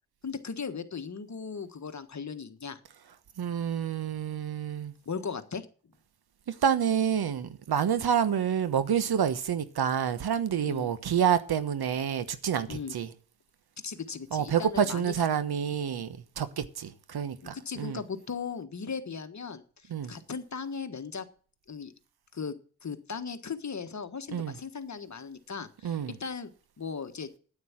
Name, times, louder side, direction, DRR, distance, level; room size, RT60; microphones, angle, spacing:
voice 1, 0.2-2.8 5.0-5.7 10.6-10.9 12.7-12.9 13.8-15.2 17.4-21.3 21.7-21.9 22.3-22.5 22.8-26.5 26.8-27.3, left 5 dB, 40° left, 1.5 m, -37 dB
voice 2, 3.4-4.9 6.5-13.1 14.3-18.0 19.9-20.1 24.3-24.5 25.8-26.2, right 8 dB, 65° right, 1.2 m, -28 dB
9.5 x 8.5 x 7.3 m
cardioid pair, 50°, 41 cm